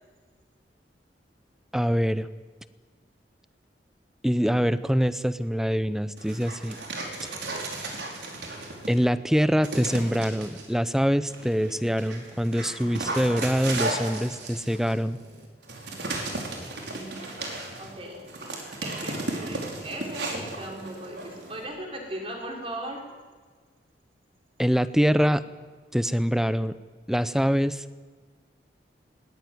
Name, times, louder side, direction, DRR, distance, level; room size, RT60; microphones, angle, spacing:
voice 1, 1.7-2.3 4.2-6.8 8.9-15.2 24.6-25.4 25.9-26.8 27.1-27.8, equal, 5° right, 14 dB, 0.7 m, -24 dB
Dog, 6.2-9.1 9.6-10.7 11.3-21.6, right 2 dB, 80° right, 4.8 m, -35 dB
voice 2, 16.9-17.4 17.8-18.2 18.8-23.0, right 1 dB, 30° right, 1 dB, 5.0 m, -38 dB
20.0 x 19.5 x 9.7 m, 1.5 s
head